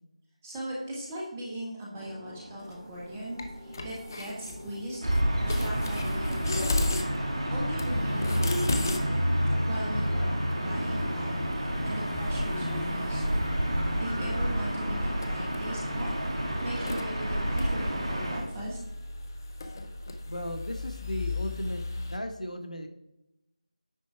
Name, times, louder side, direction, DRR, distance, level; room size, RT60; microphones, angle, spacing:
voice 1, 0.4-5.0 5.5-6.9 7.5-9.2 9.6-11.3 11.6-13.2 14.0-16.1 16.6-18.8, right 1 dB, 10° right, -4 dB, 1.4 m, -39 dB
sound 1, 1.9-19.1, equal, 90° right, 1.7 m, -35 dB
sound 2, 2.7-3.0 3.4-7.2 7.5-7.6 7.8-9.0 9.3-9.4 9.9-11.0 11.3-11.4 11.6-22.2, left 2 dB, 30° left, 0.8 m, -36 dB
Gull seagull / Ocean, 5.0-18.4, right 1 dB, 45° right, 1.9 m, -31 dB
voice 2, 20.2-22.9, equal, 80° left, 6 dB, 1.3 m, -36 dB
9.5 x 4.2 x 4.7 m, 0.91 s
figure-of-eight pair, 165°, 4 cm